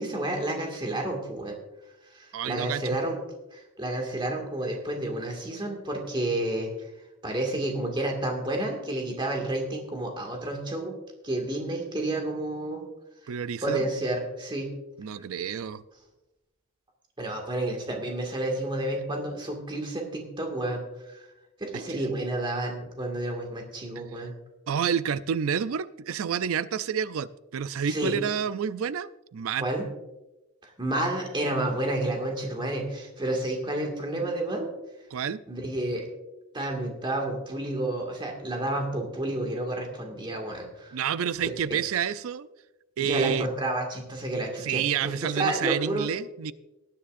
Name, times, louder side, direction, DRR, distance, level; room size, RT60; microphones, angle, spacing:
voice 1, 0.0-1.6 2.1-3.2 3.5-6.7 7.2-10.9 11.2-12.9 13.2-13.3 13.6-14.7 17.2-21.3 21.6-24.3 27.8-28.1 29.6-29.9 30.6-34.7 35.5-36.1 36.5-41.0 41.4-41.8 43.0-46.1, right 1 dB, 20° right, 1 dB, 2.0 m, -30 dB
voice 2, 2.3-3.0 13.3-13.8 15.0-15.8 21.9-22.0 24.7-29.7 35.1-35.4 40.9-42.5 43.0-43.5 44.6-46.5, right 7 dB, 70° right, 16 dB, 0.4 m, -29 dB
19.0 x 9.9 x 2.6 m, 0.99 s
head